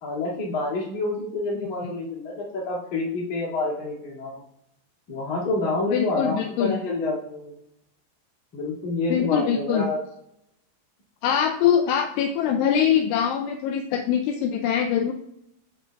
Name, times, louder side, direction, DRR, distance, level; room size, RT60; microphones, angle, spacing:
voice 1, 0.0-4.4 5.1-7.5 8.5-10.0, left 2 dB, 50° left, -5 dB, 3.0 m, -28 dB
voice 2, 5.9-6.7 9.1-9.8 11.2-15.1, left 8 dB, 85° left, 3 dB, 2.4 m, -23 dB
13.0 x 4.5 x 2.3 m, 0.77 s
omnidirectional pair, 5.2 m